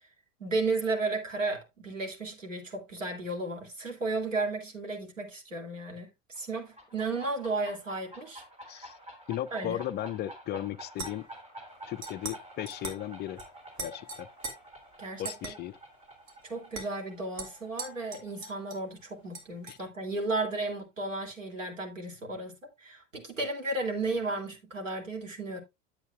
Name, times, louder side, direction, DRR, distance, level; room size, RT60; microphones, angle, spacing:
voice 1, 0.4-6.1 6.4-8.9 9.5-9.8 15.0-15.5 16.4-25.6, right 3 dB, 85° right, 2.6 m, -34 dB
sound 1, 6.4-19.7, right 1 dB, 15° right, 3.4 m, -50 dB
voice 2, 9.3-11.3 11.9-13.4 13.8-14.3 15.2-15.8 19.7-19.8, left 12 dB, 30° left, 0.4 m, -36 dB
sound 2, 10.9-11.4 12.0-12.4 12.7-13.0 13.4-13.5 13.8-14.5 15.2-15.5 16.3-16.4 16.7-16.9 17.4-18.9 19.3-19.8, right 3 dB, 50° right, 3.3 m, -41 dB
11.0 x 8.0 x 2.3 m
figure-of-eight pair, 75°, 37 cm